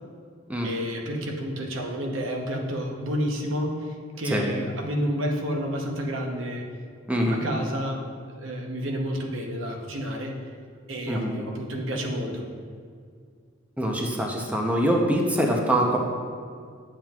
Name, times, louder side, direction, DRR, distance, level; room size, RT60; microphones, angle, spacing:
voice 1, 0.6-6.6 7.3-8.0 8.3-10.3 10.9-12.5, equal, 75° right, 2 dB, 0.8 m, -30 dB
voice 2, 7.1-7.4 11.1-11.3 13.8-16.0, equal, 10° right, 0 dB, 0.6 m, -24 dB
8.9 x 7.4 x 2.4 m, 2.1 s
head